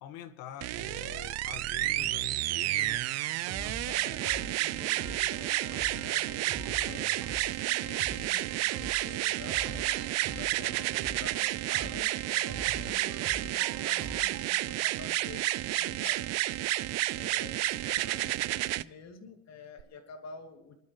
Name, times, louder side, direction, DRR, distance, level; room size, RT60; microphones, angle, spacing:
voice 1, 0.0-3.0 5.0-5.3 16.0-16.1, left 10 dB, 65° left, 1.5 m, -45 dB
sound 1, 0.6-18.8 19.8-19.9, right 16 dB, 45° right, 0.4 m, -31 dB
sound 2, 2.9-14.6, right 3 dB, 60° right, 3.5 m, -44 dB
voice 2, 3.8-10.1 10.3-16.2 17.1-20.8, left 4 dB, 45° left, 2.7 m, -49 dB
27.0 x 12.0 x 3.1 m
cardioid pair, 135°, 39 cm